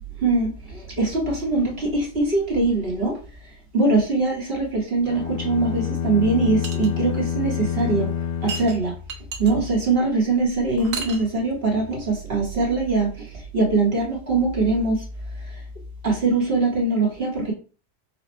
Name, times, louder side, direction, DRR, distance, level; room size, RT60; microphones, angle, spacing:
voice 1, 0.2-3.2 3.7-8.1 8.4-8.9 9.4-13.3 13.5-15.0 16.0-17.5, right 3 dB, 50° right, -2 dB, 1.3 m, -22 dB
sound 1, 5.1-9.4, left 9 dB, 70° left, 0.9 m, -28 dB
sound 2, 6.6-6.9 8.5-9.5 10.8-11.3, right 5 dB, 85° right, 1.2 m, -32 dB
4.2 x 2.3 x 4.3 m, 0.36 s
omnidirectional pair, 1.3 m